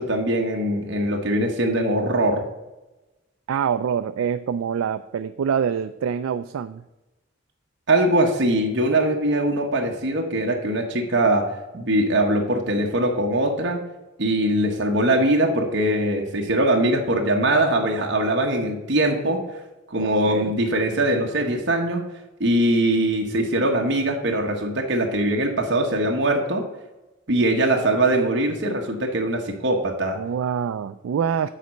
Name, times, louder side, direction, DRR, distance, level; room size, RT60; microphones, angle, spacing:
voice 1, 0.0-2.4 7.9-11.5 11.7-13.8 14.2-19.4 19.9-22.1 22.4-26.6 27.3-30.2, right 1 dB, 55° right, 1 dB, 1.0 m, -22 dB
voice 2, 3.5-6.8 20.0-20.5 30.2-31.5, right 7 dB, 90° right, 11 dB, 0.3 m, -25 dB
9.3 x 4.1 x 6.4 m, 1.0 s
head